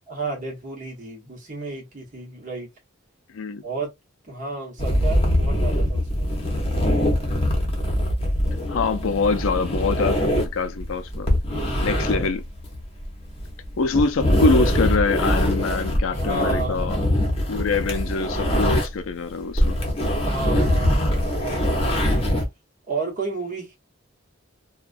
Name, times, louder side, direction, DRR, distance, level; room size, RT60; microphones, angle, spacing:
voice 1, 0.1-2.7 3.6-3.9 4.3-6.6 11.5-12.1 16.1-16.9 20.2-22.3 22.9-23.7, right 3 dB, 40° right, 1.1 m, -32 dB
sound 1, 4.8-19.1 19.4-22.5, equal, 30° left, 0.8 m, -22 dB
voice 2, 8.7-11.3 11.8-12.4 13.8-17.0 17.5-19.8, left 4 dB, 75° left, 0.4 m, -24 dB
2.3 x 2.2 x 2.5 m
head